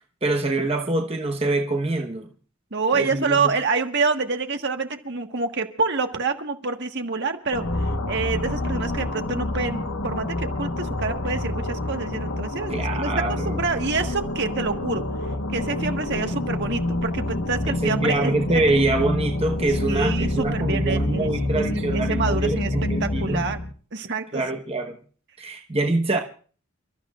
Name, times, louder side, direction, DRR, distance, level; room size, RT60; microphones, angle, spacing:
voice 1, 0.2-2.3 2.9-3.5 12.7-13.6 17.7-23.5 24.3-25.0 25.4-26.2, right 2 dB, 25° right, 1.2 m, -25 dB
voice 2, 2.7-7.6 8.1-15.0 15.5-18.3 19.9-21.3 21.6-22.7 23.0-23.6 23.9-24.4, right 4 dB, 55° right, 1.5 m, -27 dB
sound 1, 7.5-23.7, left 1 dB, 70° left, 1.3 m, -27 dB
29.5 x 13.0 x 2.5 m
head